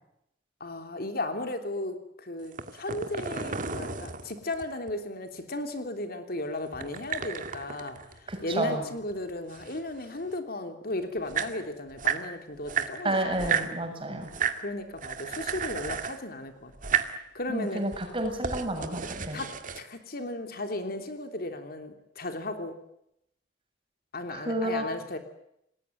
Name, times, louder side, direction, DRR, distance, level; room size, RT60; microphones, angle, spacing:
voice 1, 0.6-13.8 14.6-16.7 17.3-17.8 19.3-22.8 24.1-25.2, left 2 dB, 55° left, 7 dB, 3.2 m, -35 dB
sound 1, 2.4-4.9 6.7-8.8 9.1-10.3 10.9-11.0 11.2-12.3 12.7-13.7 14.2-14.6 15.0-16.2 16.7-17.2 17.7-19.8, right 7 dB, 45° right, 2.1 m, -33 dB
voice 2, 8.3-8.8 13.0-14.3 17.5-19.4 24.3-24.8, right 1 dB, 30° right, 4 dB, 7.2 m, -30 dB
28.5 x 19.5 x 9.2 m, 0.79 s
head